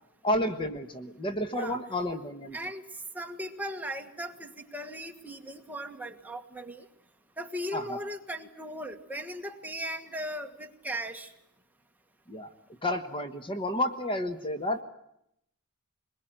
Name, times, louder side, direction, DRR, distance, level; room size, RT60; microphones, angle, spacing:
voice 1, 0.2-2.6 7.7-8.0 12.3-12.5 12.8-14.8, left 1 dB, 25° left, 7 dB, 1.2 m, -31 dB
voice 2, 2.5-2.8 3.1-6.9 7.4-11.3, equal, 10° right, 4 dB, 1.6 m, -38 dB
22.5 x 21.5 x 9.0 m, 0.77 s
head